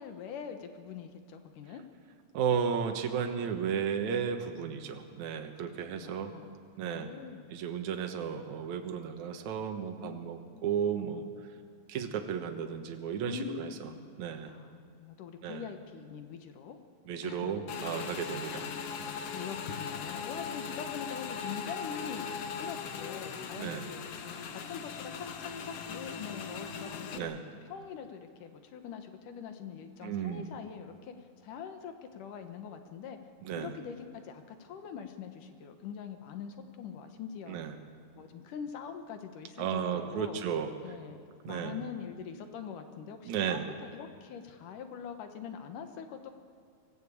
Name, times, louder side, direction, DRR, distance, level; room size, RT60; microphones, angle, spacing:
voice 1, 0.0-1.8 6.0-6.6 6.8-7.5 10.0-10.2 10.5-10.6 13.3-14.1 14.5-16.8 17.2-17.5 18.5-18.9 19.3-24.1 24.5-27.3 27.6-31.1 31.4-33.2 33.6-37.6 38.2-40.4 40.8-46.3, left 7 dB, 80° left, 7 dB, 2.8 m, -43 dB
voice 2, 2.3-6.3 6.8-7.1 7.5-11.3 11.9-13.7 14.2-14.5 15.4-15.7 17.1-18.7 19.0-19.1 23.6-23.9 27.2-27.4 30.0-30.5 33.4-33.7 37.5-37.7 39.6-40.7 41.4-41.8 43.3-43.6, right 7 dB, 65° right, 5 dB, 2.6 m, -34 dB
Motorcycle / Engine, 17.7-27.2, left 6 dB, 60° left, 1.9 m, -39 dB
24.0 x 16.0 x 8.5 m, 2.3 s
omnidirectional pair, 3.7 m